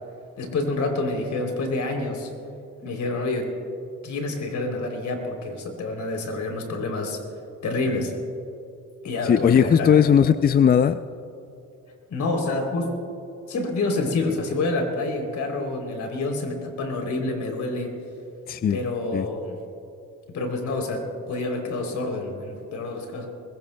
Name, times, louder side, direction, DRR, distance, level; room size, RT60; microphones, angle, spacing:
voice 1, 0.4-2.3 2.8-3.5 4.0-7.2 7.6-8.1 9.0-10.0 12.1-12.9 13.5-17.9 18.7-19.6 20.3-23.3, left 2 dB, 65° left, 3 dB, 3.3 m, -28 dB
voice 2, 9.2-11.0 18.5-18.8 19.1-19.3, left 8 dB, 30° left, 12 dB, 0.4 m, -18 dB
23.0 x 21.5 x 2.2 m, 2.7 s
cardioid pair, 90°, 30 cm